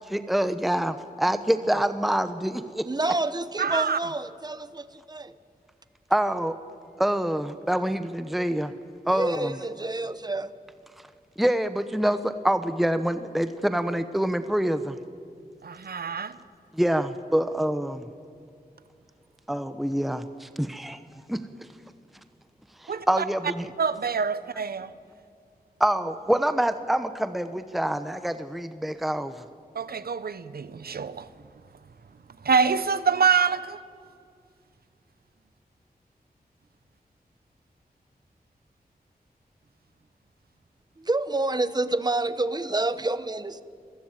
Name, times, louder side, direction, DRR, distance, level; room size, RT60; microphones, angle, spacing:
voice 1, 0.1-2.9 6.1-6.5 7.0-8.7 9.1-9.5 11.4-15.0 16.7-18.1 19.5-21.0 21.3-21.7 22.8-23.7 25.8-29.4, right 1 dB, ahead, 0.9 m, -26 dB
voice 2, 2.8-5.3 9.1-10.5 41.0-43.6, right 2 dB, 25° right, 1.1 m, -28 dB
voice 3, 3.6-4.0 15.6-16.4 22.9-23.0 23.8-24.9 29.7-31.3 32.4-33.8, right 6 dB, 75° right, 1.0 m, -25 dB
27.5 x 20.5 x 9.0 m
wide cardioid pair, 110°, 16 cm